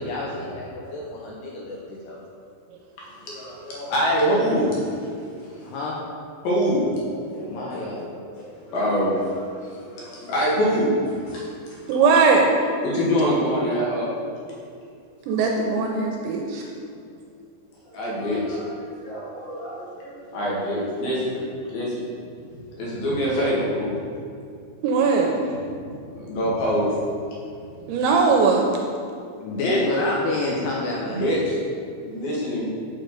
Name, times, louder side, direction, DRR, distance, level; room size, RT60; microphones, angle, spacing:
voice 1, 0.0-2.2 5.6-6.0 7.3-8.1 29.4-31.4, left 2 dB, 75° left, -4 dB, 2.6 m, -29 dB
voice 2, 3.0-5.7 6.4-8.1 8.3-11.9 12.8-14.1 17.8-21.3 21.7-22.0 22.8-24.0 25.6-25.8 26.1-26.9 27.8-27.9 29.5-29.8 31.1-31.6 31.9-32.7, equal, 60° left, -6 dB, 3.0 m, -25 dB
voice 3, 11.9-12.6 15.3-16.7 24.8-25.4 27.9-28.7, right 4 dB, 85° right, 1 dB, 2.7 m, -19 dB
6.8 x 6.5 x 6.5 m, 2.4 s
omnidirectional pair, 5.7 m